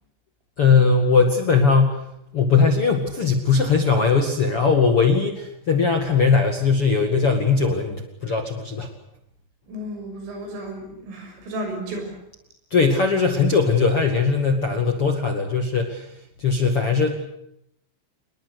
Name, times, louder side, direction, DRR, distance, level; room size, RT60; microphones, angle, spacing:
voice 1, 0.6-2.1 2.3-8.9 12.7-16.1 16.4-17.1, left 5 dB, 45° left, 5 dB, 2.0 m, -19 dB
voice 2, 9.7-12.2, right 1 dB, 85° right, 4 dB, 9.2 m, -33 dB
27.5 x 21.0 x 8.2 m, 0.76 s
omnidirectional pair, 5.7 m